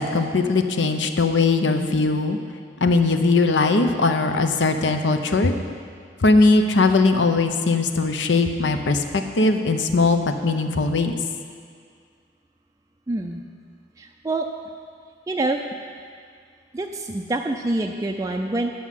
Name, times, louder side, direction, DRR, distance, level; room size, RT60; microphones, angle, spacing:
voice 1, 0.0-2.4 2.8-5.6 6.2-11.1, left 3 dB, 75° left, 6 dB, 0.7 m, -20 dB
voice 2, 13.1-13.4 14.0-14.5 15.3-15.6 16.7-18.7, right 2 dB, 20° right, 2 dB, 0.4 m, -26 dB
10.0 x 6.1 x 7.4 m, 2.1 s
head